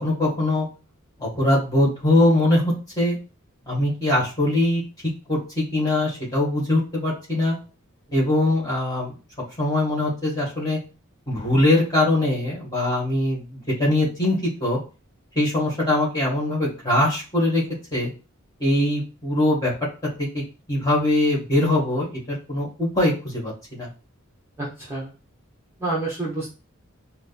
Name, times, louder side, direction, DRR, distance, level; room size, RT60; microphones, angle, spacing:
voice 1, 0.0-0.7 1.2-3.2 3.7-4.8 5.3-7.6 8.1-9.1 9.6-10.8 11.3-14.8 15.4-17.6 17.9-18.1 18.6-19.7 20.2-20.4 20.7-23.9, left 1 dB, 15° left, -4 dB, 1.9 m, -22 dB
voice 2, 24.6-25.1 25.8-26.5, right 2 dB, 10° right, -6 dB, 0.9 m, -28 dB
5.1 x 2.2 x 4.1 m, 0.33 s
head